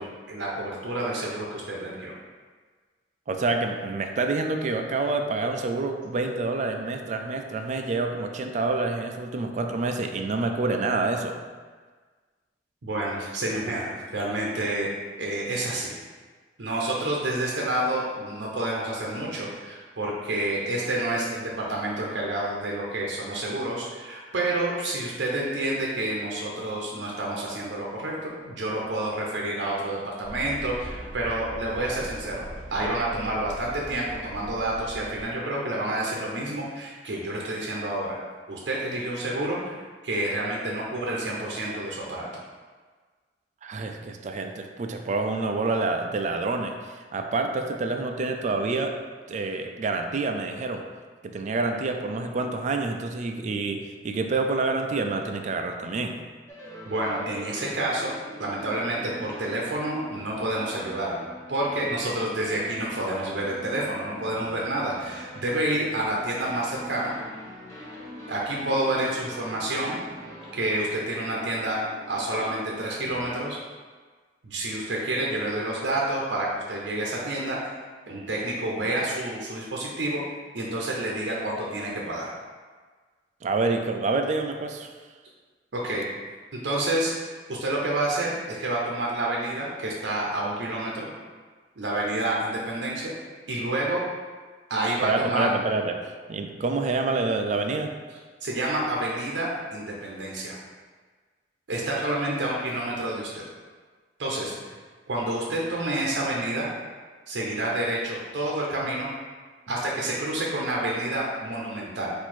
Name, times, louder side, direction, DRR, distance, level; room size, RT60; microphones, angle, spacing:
voice 1, 0.0-2.1 12.8-14.9 15.2-15.9 16.6-32.4 32.7-38.2 38.5-42.4 56.9-58.1 58.4-61.2 61.5-67.1 68.3-70.0 70.5-71.8 72.1-73.6 74.4-77.8 78.1-80.2 80.5-82.3 85.7-86.1 86.5-91.1 91.8-93.1 93.5-94.0 94.7-95.5 98.4-100.6 101.7-103.4 104.2-104.8 105.1-106.7 107.3-109.1 109.7-112.1, right 1 dB, 80° right, -3 dB, 0.7 m, -29 dB
voice 2, 3.3-11.4 43.6-49.0 49.3-50.8 51.2-56.2 83.4-84.9 95.0-98.0, right 3 dB, 40° right, 4 dB, 0.3 m, -27 dB
sound 1, 30.2-35.2, equal, 10° right, 1.5 m, -41 dB
sound 2, 56.5-73.5, equal, 20° left, 1.1 m, -43 dB
4.5 x 2.6 x 4.2 m, 1.4 s
head